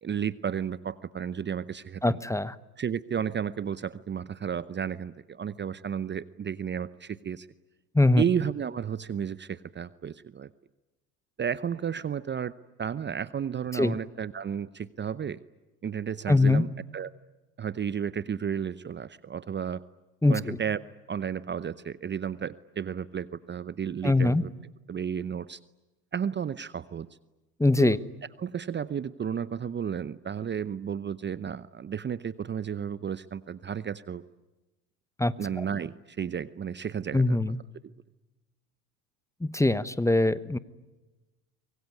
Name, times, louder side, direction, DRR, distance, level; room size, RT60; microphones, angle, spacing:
voice 1, 0.0-2.2 2.8-7.5 8.2-10.5 11.4-15.4 15.8-17.1 17.6-19.8 20.3-20.8 21.1-24.5 24.9-25.6 26.1-27.1 27.8-28.0 28.4-34.2 35.4-37.4, right 8 dB, 25° right, 16 dB, 0.8 m, -32 dB
voice 2, 2.0-2.5 7.9-8.2 13.7-14.0 16.3-16.6 20.2-20.6 24.0-24.4 27.6-28.0 35.2-35.3 37.1-37.6 39.4-40.6, left 2 dB, 5° left, 16 dB, 1.1 m, -22 dB
25.0 x 22.5 x 9.6 m, 1.1 s
hypercardioid pair, 80°, 45 cm